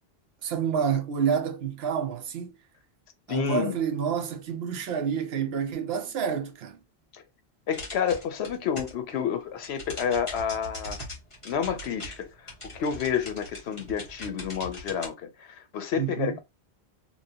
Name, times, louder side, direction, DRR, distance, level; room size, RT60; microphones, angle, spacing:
voice 1, 0.4-2.5 3.3-6.8 16.0-16.4, right 7 dB, 75° right, 0.9 m, -28 dB
voice 2, 3.3-3.8 7.1-7.2 7.7-11.0 11.4-16.4, left 7 dB, 85° left, 0.9 m, -30 dB
sound 1, 7.7-9.1 9.4-15.1, left 1 dB, 30° left, 1.3 m, -41 dB
3.0 x 2.8 x 2.7 m
omnidirectional pair, 1.1 m